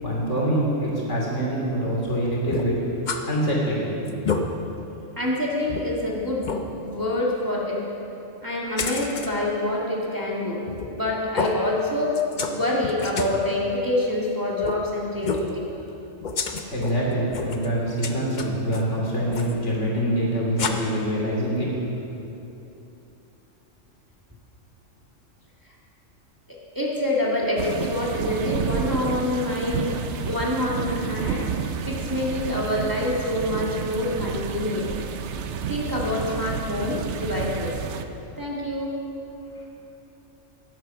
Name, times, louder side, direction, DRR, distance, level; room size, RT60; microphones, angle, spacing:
voice 1, 0.0-2.8 3.2-3.9 16.7-21.7, equal, 65° left, -3 dB, 3.1 m, -25 dB
sound 1, 2.5-3.2 3.6-3.7 4.0-4.4 5.0-5.1 5.7-5.8 6.4-6.6 8.8-9.3 10.7-11.0 11.3-11.5 12.1-12.6 12.8-13.4 14.6-14.8 15.2-15.5 16.2-16.9 17.3-17.7 18.0-18.8 19.3-19.5 20.6-20.7, left 5 dB, 40° left, 0.8 m, -28 dB
voice 2, 5.2-8.0 8.4-12.2 12.5-15.6 26.5-35.0 35.7-37.7 38.4-38.9, left 1 dB, 15° right, -4 dB, 1.7 m, -26 dB
sound 2, 27.6-38.0, right 6 dB, 65° right, 0.9 m, -30 dB
11.0 x 11.0 x 6.9 m, 2.9 s
omnidirectional pair, 1.3 m